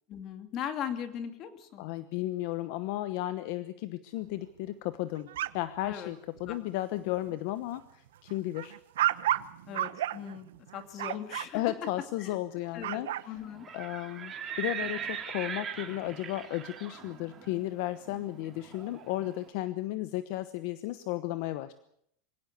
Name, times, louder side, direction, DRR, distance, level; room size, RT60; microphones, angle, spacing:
voice 1, 0.1-1.9 5.8-6.1 6.5-6.6 9.7-10.5 10.7-11.6 12.2-12.4 12.7-13.7, left 9 dB, 30° left, 8 dB, 2.4 m, -39 dB
voice 2, 1.8-5.3 5.5-8.8 11.5-13.1 13.7-21.7, left 15 dB, 50° left, 13 dB, 1.0 m, -34 dB
sound 1, 5.2-5.9 6.4-6.6 7.0-7.3 7.7-11.5 12.6-13.3, right 13 dB, 85° right, 1.0 m, -32 dB
Livestock farm animals working animals, 13.5-19.3, right 7 dB, 15° right, 2.9 m, -40 dB
24.0 x 17.0 x 8.1 m, 0.73 s
supercardioid pair, 170°, 0 cm